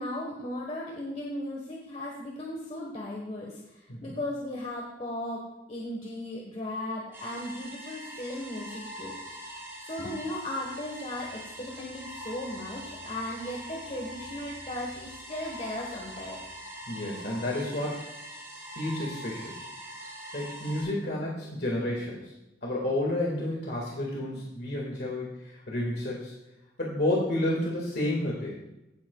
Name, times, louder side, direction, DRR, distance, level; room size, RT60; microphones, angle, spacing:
voice 1, 0.0-9.6 9.9-16.4, left 1 dB, 40° left, -1 dB, 1.3 m, -37 dB
Viral Suspense, 7.1-20.8, equal, 15° right, 3.9 m, -43 dB
voice 2, 16.9-18.1 18.8-19.6 20.3-22.3 22.6-26.3 26.8-28.6, left 1 dB, 60° left, -3 dB, 1.9 m, -30 dB
15.0 x 8.7 x 2.3 m, 0.94 s
head